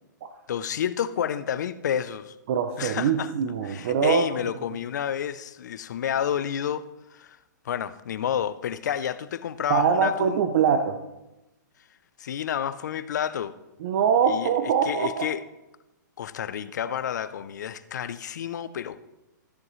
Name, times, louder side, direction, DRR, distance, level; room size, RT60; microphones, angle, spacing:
voice 1, 0.5-2.3 2.8-3.3 3.6-6.8 7.1-7.4 7.6-10.4 12.2-13.6 14.3-14.5 14.8-15.4 16.2-19.0, left 9 dB, 65° left, 0.6 m, -30 dB
voice 2, 2.5-4.3 9.7-11.0 13.8-15.3, right 7 dB, 40° right, 0.6 m, -23 dB
14.0 x 7.3 x 3.2 m
hypercardioid pair, 165°, 10 cm